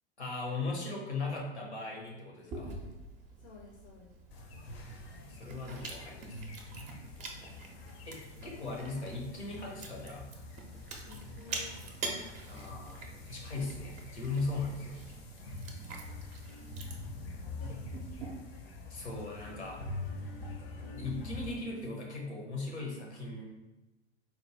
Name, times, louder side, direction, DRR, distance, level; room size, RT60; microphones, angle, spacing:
voice 1, 0.2-2.8 5.3-6.4 8.0-10.3 12.5-15.0 18.9-19.8 20.9-23.4, left 3 dB, 75° left, -1 dB, 1.1 m, -38 dB
Chewing mastication, 2.5-18.2, right 3 dB, 20° right, 0.5 m, -46 dB
voice 2, 3.4-4.1 11.0-12.1 17.2-18.1, left 4 dB, 35° left, -1 dB, 0.6 m, -54 dB
sound 1, 4.3-21.5, left 2 dB, 60° left, 0.8 m, -45 dB
4.3 x 2.2 x 3.3 m, 1.1 s
figure-of-eight pair, 90°, 34 cm